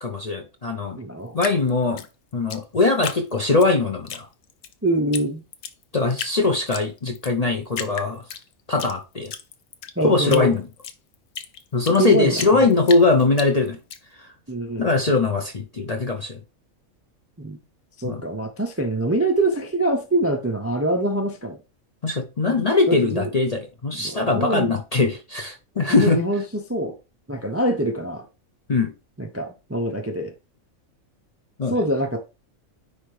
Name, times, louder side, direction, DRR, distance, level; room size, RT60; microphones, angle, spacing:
voice 1, 0.0-1.0 1.3-2.0 2.3-4.3 5.9-8.2 8.7-9.3 10.0-10.6 11.7-13.8 14.8-16.4 18.0-18.2 22.0-26.2 28.7-28.9 31.6-31.8, left 3 dB, 40° left, 0.6 m, -21 dB
voice 2, 1.0-1.4 4.8-5.4 10.0-10.6 12.0-12.7 14.5-14.9 17.4-17.6 18.0-21.6 22.5-22.6 22.9-23.3 23.9-24.8 25.9-27.0 27.3-28.2 29.2-30.3 31.7-32.2, right 1 dB, 20° right, 0.4 m, -24 dB
Drip, 1.4-3.7 4.1-4.7 5.1-5.2 5.5-6.4 6.7-7.3 7.7-8.9 9.3-12.0 12.4-14.0, left 8 dB, 70° left, 1.0 m, -33 dB
9.8 x 3.5 x 3.3 m
omnidirectional pair, 1.4 m